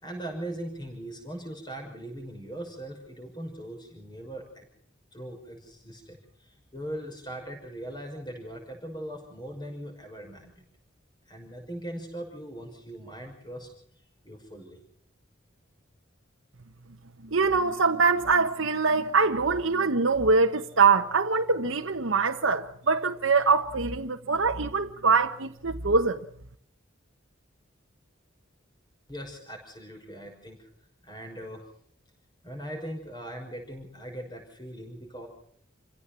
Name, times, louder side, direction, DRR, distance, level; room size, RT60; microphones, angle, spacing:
voice 1, 0.0-4.7 5.1-10.6 11.3-13.7 14.2-14.8 29.1-30.7 31.0-31.6 32.4-35.3, right 1 dB, 20° left, 6.0 m, -40 dB
voice 2, 17.3-26.2, right 4 dB, 80° right, 1.2 m, -23 dB
29.0 x 16.5 x 5.9 m
head